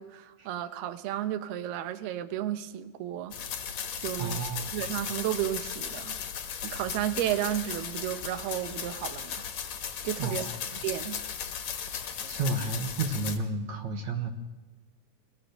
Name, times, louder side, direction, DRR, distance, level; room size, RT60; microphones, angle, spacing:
voice 1, 0.0-3.4 4.0-6.2 6.6-9.5 10.0-11.2, right 12 dB, 80° right, 2.9 m, -33 dB
sound 1, 3.3-13.4, left 8 dB, 55° left, 2.3 m, -36 dB
voice 2, 4.2-4.9 10.2-10.5 12.2-14.3, right 3 dB, 60° right, 2.2 m, -31 dB
24.5 x 17.5 x 6.5 m
omnidirectional pair, 4.6 m